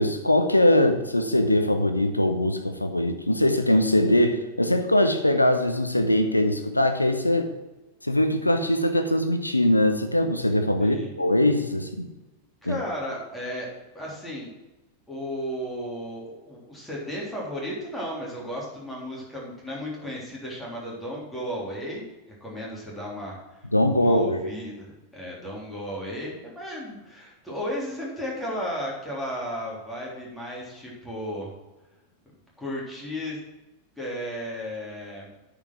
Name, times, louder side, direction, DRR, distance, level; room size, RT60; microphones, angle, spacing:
voice 1, 0.0-7.5 8.0-12.1 12.6-12.8 23.7-24.5, left 1 dB, 85° left, 7 dB, 0.9 m, -22 dB
voice 2, 10.8-11.1 12.6-13.7 13.9-14.5 15.1-22.0 22.4-23.6 24.0-31.5 32.6-33.4 34.0-35.3, equal, 5° left, -5 dB, 3.5 m, -34 dB
9.3 x 5.1 x 6.1 m, 1.1 s
figure-of-eight pair, 90°, 0 cm